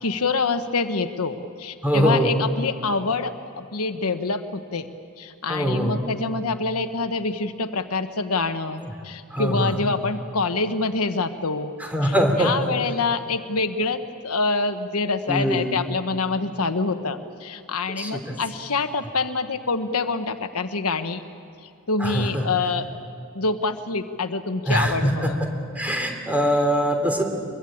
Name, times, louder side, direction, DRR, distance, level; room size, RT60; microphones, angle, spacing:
voice 1, 0.0-4.9 5.2-11.7 12.0-12.1 12.4-21.2 21.9-22.9 23.3-25.4, left 3 dB, 85° left, 9 dB, 1.2 m, -26 dB
voice 2, 1.8-2.4 5.5-6.0 8.8-8.9 9.3-9.8 11.8-12.6 15.3-15.8 17.9-18.4 22.0-22.5 24.7-25.3 25.7-27.2, equal, 5° right, 3 dB, 3.3 m, -22 dB
24.0 x 22.0 x 8.8 m, 2.4 s
head